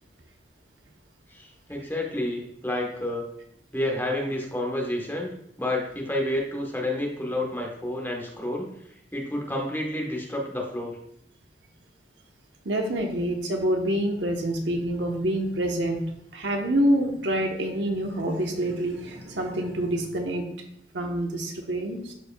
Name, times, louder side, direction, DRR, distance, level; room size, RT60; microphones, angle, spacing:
voice 1, 1.3-3.3 3.7-5.3 5.6-8.7 9.1-11.0, left 1 dB, 10° left, -1 dB, 1.2 m, -29 dB
voice 2, 12.6-16.0 16.3-20.4 20.9-22.1, right 1 dB, 85° right, 2 dB, 1.1 m, -26 dB
12.0 x 4.6 x 2.4 m, 0.74 s
head